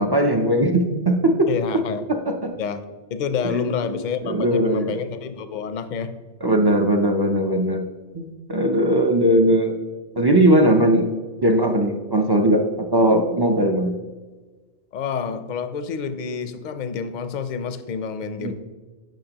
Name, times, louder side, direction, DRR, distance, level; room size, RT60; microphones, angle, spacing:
voice 1, 0.0-1.5 2.3-2.5 3.4-3.9 4.2-5.0 6.4-7.8 8.1-9.7 10.2-11.1 11.4-12.6 12.9-14.0 18.4-18.5, right 1 dB, 40° right, 3 dB, 0.3 m, -19 dB
voice 2, 1.5-2.1 2.6-2.8 3.1-6.1 14.9-18.5, left 6 dB, 55° left, 10 dB, 0.6 m, -28 dB
9.1 x 5.8 x 2.9 m, 1.3 s
omnidirectional pair, 1.2 m